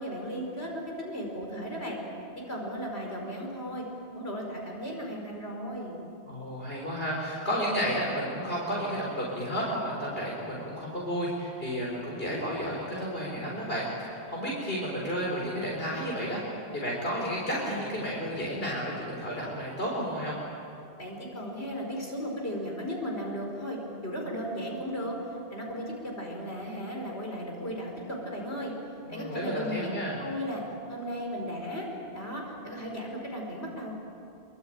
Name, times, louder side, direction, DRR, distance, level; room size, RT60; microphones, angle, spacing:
voice 1, 0.0-2.0 2.5-3.8 4.1-6.0 21.0-25.2 25.5-28.7 29.1-29.8 30.2-30.6 30.9-31.9 32.1-33.9, equal, 90° left, -1 dB, 5.3 m, -35 dB
voice 2, 6.3-16.4 16.7-20.3 29.1-30.2, equal, 65° left, -3 dB, 4.4 m, -32 dB
25.0 x 24.0 x 9.0 m, 2.6 s
omnidirectional pair, 1.0 m